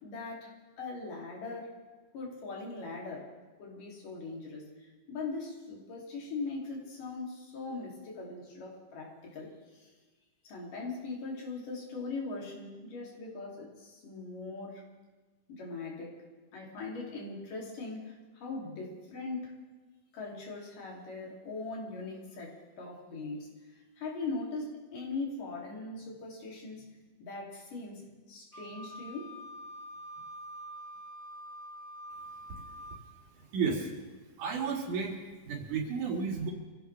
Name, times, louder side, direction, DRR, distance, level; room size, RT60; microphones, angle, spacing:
voice 1, 0.0-1.7 2.1-3.3 3.6-9.9 10.4-14.8 15.5-16.2 16.5-19.6 20.1-23.5 24.0-26.9 27.2-29.4, left 3 dB, 90° left, -2 dB, 4.6 m, -40 dB
Wind instrument woodwind instrument, 28.5-33.0, equal, ahead, 2.9 m, -46 dB
voice 2, 33.4-33.9 34.4-35.2 35.5-36.5, right 5 dB, 75° right, 0 dB, 3.6 m, -32 dB
25.0 x 16.0 x 3.4 m, 1.3 s
omnidirectional pair, 3.6 m